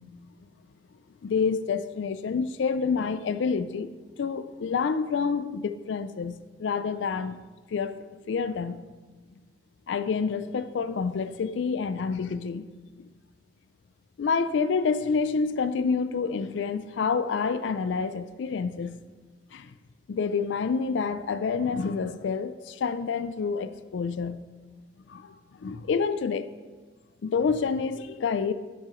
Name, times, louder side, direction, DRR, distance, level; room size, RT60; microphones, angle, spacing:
voice 1, 1.2-3.9 4.2-7.4 7.7-8.8 9.9-12.7 14.2-19.0 19.5-19.7 20.1-24.4 25.1-25.3 25.6-26.5 27.2-28.5, left 5 dB, 75° left, 0.4 m, -28 dB
9.5 x 8.4 x 3.1 m
head